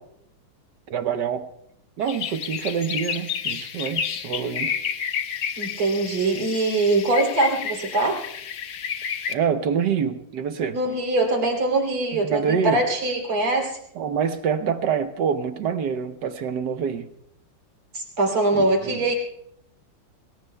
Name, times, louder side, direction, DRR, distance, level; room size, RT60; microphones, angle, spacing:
voice 1, 0.9-1.5 2.0-4.8 9.3-10.8 12.2-12.8 14.0-17.1 18.5-19.0, right 7 dB, 65° right, 9 dB, 1.2 m, -26 dB
sound 1, 2.0-9.3, left 7 dB, 60° left, 1.2 m, -30 dB
voice 2, 5.6-8.2 10.7-13.8 17.9-19.1, right 2 dB, 85° right, 2 dB, 4.0 m, -22 dB
28.0 x 21.0 x 2.2 m, 0.74 s
omnidirectional pair, 2.3 m